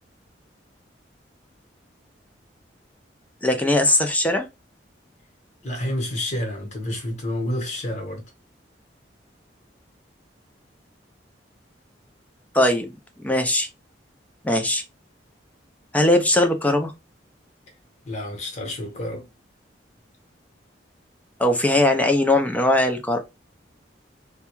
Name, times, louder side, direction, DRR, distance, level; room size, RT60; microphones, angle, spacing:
voice 1, 3.4-4.5 12.5-13.7 14.4-14.8 15.9-16.9 21.4-23.2, left 1 dB, 10° left, 0.4 m, -20 dB
voice 2, 5.6-8.2 18.0-19.3, left 1 dB, 40° left, 1.0 m, -29 dB
2.3 x 2.2 x 3.0 m
head